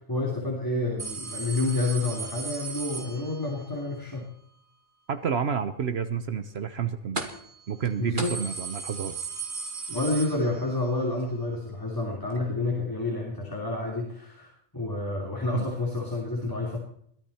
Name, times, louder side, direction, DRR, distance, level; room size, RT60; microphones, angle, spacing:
voice 1, 0.1-4.3 8.0-8.3 9.9-16.8, left 2 dB, 15° left, -2 dB, 3.1 m, -29 dB
sound 1, 1.0-3.7 7.2-7.6 7.8-7.9 8.2-10.9 11.2-11.3 12.4-12.5, right 4 dB, 45° right, 2.1 m, -36 dB
voice 2, 5.1-7.2 7.7-9.1 15.5-15.7, right 7 dB, 60° right, 11 dB, 1.1 m, -29 dB
22.5 x 14.5 x 4.3 m, 0.68 s
omnidirectional pair, 1.2 m